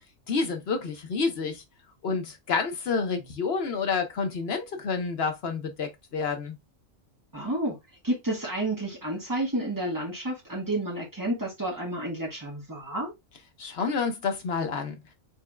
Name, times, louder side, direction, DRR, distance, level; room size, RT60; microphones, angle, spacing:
voice 1, 0.3-1.6 2.0-6.6 13.6-15.0, left 5 dB, 55° left, 1.0 m, -29 dB
voice 2, 7.3-7.8 8.0-13.1, right 1 dB, 15° right, 1.5 m, -30 dB
4.4 x 3.5 x 2.2 m
omnidirectional pair, 1.4 m